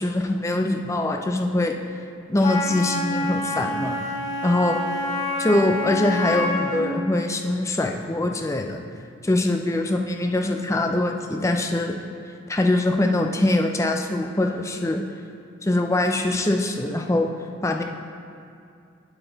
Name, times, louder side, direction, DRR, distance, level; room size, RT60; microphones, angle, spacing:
voice 1, 0.0-1.8 2.3-4.0 4.4-4.8 5.4-8.8 9.2-12.0 12.5-15.0 15.6-17.3 17.6-17.8, left 1 dB, 15° left, 3 dB, 0.4 m, -23 dB
Wind instrument woodwind instrument, 2.4-6.9, left 2 dB, 40° left, 1.6 m, -27 dB
11.5 x 4.0 x 4.0 m, 2.5 s
head